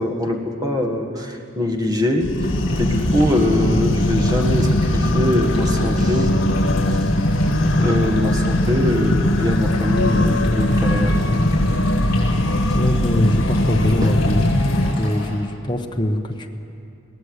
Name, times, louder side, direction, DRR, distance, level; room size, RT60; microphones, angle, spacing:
voice 1, 0.0-2.5 2.8-6.3 6.9-7.1 7.8-11.1 12.7-12.8 14.0-14.1, left 1 dB, 20° right, 3 dB, 1.7 m, -22 dB
sound 1, 2.2-14.9, left 1 dB, 90° left, 1.4 m, -19 dB
sound 2, 2.4-15.3, left 3 dB, 50° left, 7.6 m, -37 dB
voice 2, 12.7-14.4 15.0-16.5, left 1 dB, 25° left, 3 dB, 1.0 m, -23 dB
22.0 x 17.5 x 8.1 m, 2.7 s
head